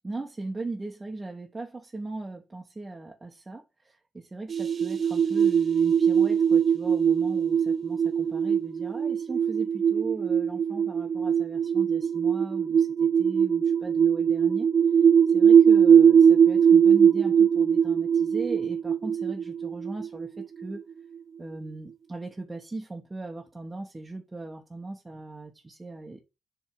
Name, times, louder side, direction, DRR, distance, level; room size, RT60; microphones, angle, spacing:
voice 1, 0.0-14.7 15.3-20.8 21.4-26.2, right 2 dB, 20° right, 1.2 m, -38 dB
sound 1, 4.5-20.8, right 7 dB, 50° right, 0.3 m, -21 dB
7.4 x 3.6 x 4.6 m
cardioid pair, 90°, 0 cm